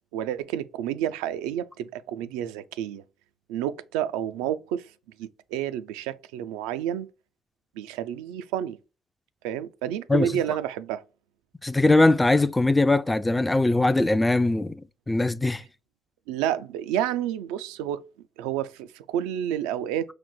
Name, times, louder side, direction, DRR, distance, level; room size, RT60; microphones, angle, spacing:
voice 1, 0.1-3.0 3.5-4.9 5.2-7.1 7.8-8.8 9.4-11.0 16.3-18.0 18.4-20.1, right 11 dB, 85° right, 0.3 m, -30 dB
voice 2, 11.6-15.6, left 2 dB, 15° left, 0.3 m, -21 dB
4.7 x 2.0 x 3.8 m
hypercardioid pair, 60°, 0 cm